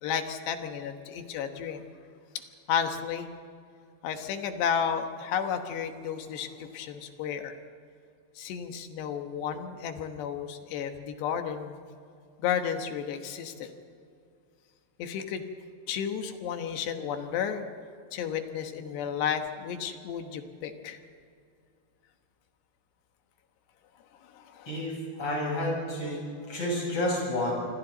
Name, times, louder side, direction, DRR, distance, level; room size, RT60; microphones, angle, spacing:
voice 1, 0.0-1.8 2.7-3.3 4.0-7.6 8.4-11.8 12.4-13.7 15.0-15.4 15.9-17.7 18.1-21.0 24.2-24.7, left 8 dB, 75° left, 6 dB, 3.2 m, -32 dB
voice 2, 24.7-26.2 26.5-27.5, left 1 dB, 30° left, -3 dB, 8.3 m, -30 dB
27.0 x 24.0 x 4.0 m, 2.4 s
omnidirectional pair, 5.1 m